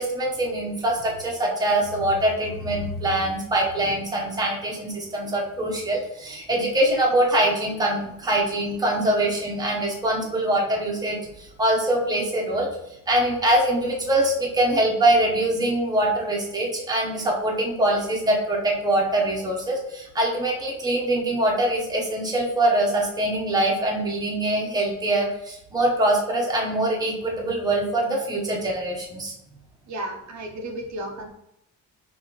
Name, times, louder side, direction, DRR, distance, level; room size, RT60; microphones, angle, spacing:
voice 1, 0.0-29.3, right 1 dB, 10° right, -2 dB, 0.9 m, -23 dB
voice 2, 29.9-31.3, right 1 dB, 55° right, 3 dB, 0.7 m, -33 dB
5.5 x 2.7 x 3.0 m, 0.81 s
cardioid pair, 145°, 33 cm